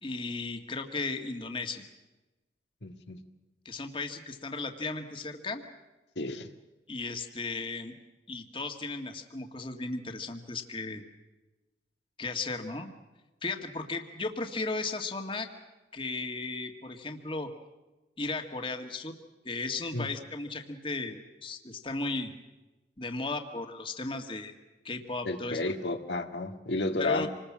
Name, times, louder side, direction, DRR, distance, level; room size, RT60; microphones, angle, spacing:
voice 1, 0.0-1.8 3.7-5.6 6.9-8.0 8.3-11.0 12.2-12.9 13.4-15.5 15.9-17.5 18.2-19.2 19.5-22.3 23.0-24.5 24.8-25.6 27.0-27.3, left 3 dB, 30° left, 5 dB, 1.9 m, -35 dB
voice 2, 2.8-3.2 6.2-6.5 19.9-20.1 25.2-27.3, left 2 dB, 85° left, 5 dB, 1.9 m, -32 dB
27.0 x 20.5 x 7.4 m, 1.1 s
head